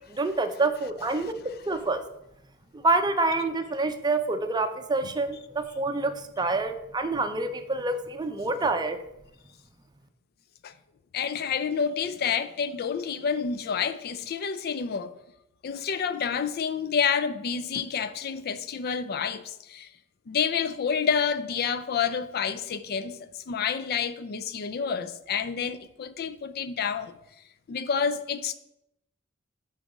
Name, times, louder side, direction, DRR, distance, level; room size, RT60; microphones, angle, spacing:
voice 1, 0.1-2.0 2.7-9.0, right 3 dB, 20° right, 0.6 m, -27 dB
voice 2, 11.1-15.1 15.6-19.9 20.3-27.1 27.7-28.5, left 6 dB, 50° left, 0.4 m, -29 dB
9.4 x 4.0 x 5.0 m
head